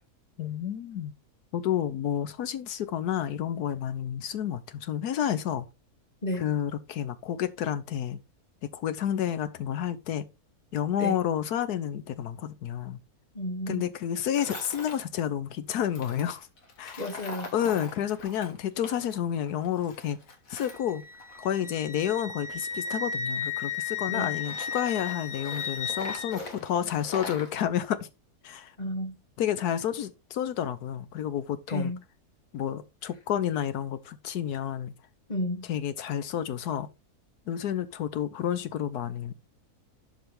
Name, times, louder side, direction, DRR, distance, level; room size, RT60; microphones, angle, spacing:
voice 1, 0.4-1.1 1.5-5.7 6.4-8.2 8.6-10.2 10.7-13.0 13.7-16.5 16.8-17.1 17.5-20.2 20.5-21.0 21.4-28.1 28.4-28.7 29.4-31.9 32.5-34.9 35.7-36.9 37.5-39.3, left 10 dB, 90° left, 1.4 m, -30 dB
voice 2, 13.3-13.9 17.0-17.5 24.1-24.3 28.8-29.2 31.7-32.0 35.3-35.6, left 1 dB, 30° left, 1.5 m, -32 dB
Tools, 14.3-15.0 15.9-19.2 19.5-21.7 22.4-24.0 24.4-27.5, left 2 dB, 60° left, 2.0 m, -43 dB
Wind instrument woodwind instrument, 20.6-26.4, left 6 dB, 45° left, 1.2 m, -34 dB
11.5 x 4.8 x 3.4 m
omnidirectional pair, 1.6 m